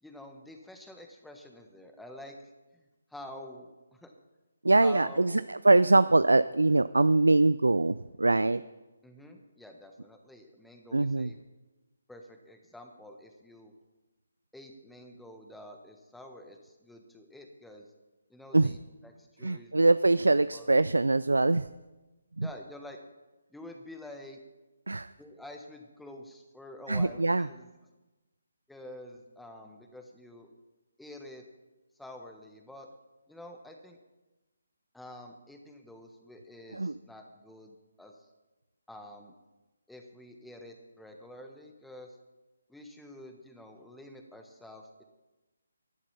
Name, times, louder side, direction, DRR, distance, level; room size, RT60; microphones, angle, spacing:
voice 1, 0.0-2.8 3.1-4.1 4.8-5.5 9.0-11.3 12.1-13.7 14.5-17.9 18.3-19.9 20.2-20.7 22.4-23.0 23.5-24.4 25.2-27.7 28.7-30.5 31.0-31.4 32.0-32.9 33.3-34.0 34.9-38.3 38.9-39.3 39.9-42.2 42.7-45.0, left 1 dB, ahead, 3 dB, 1.2 m, -48 dB
voice 2, 4.6-8.6 10.9-11.3 18.5-18.7 19.4-21.7 22.4-22.5 24.9-25.1 26.9-27.5 36.7-36.9, right 2 dB, 80° right, 15 dB, 0.4 m, -23 dB
11.5 x 11.0 x 5.7 m, 1.1 s
figure-of-eight pair, 145°, 0 cm